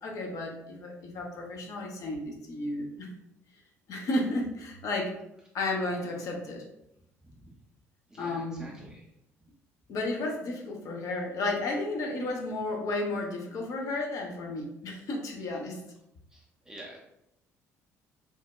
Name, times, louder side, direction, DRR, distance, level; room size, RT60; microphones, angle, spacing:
voice 1, 0.0-3.1 3.9-5.1 5.5-6.6 8.2-8.8 9.9-15.8, left 2 dB, 45° left, 1 dB, 0.6 m, -33 dB
voice 2, 8.1-9.1 16.3-17.0, right 1 dB, 10° right, -3 dB, 0.5 m, -48 dB
3.2 x 2.1 x 2.3 m, 0.81 s
figure-of-eight pair, 50°, 8 cm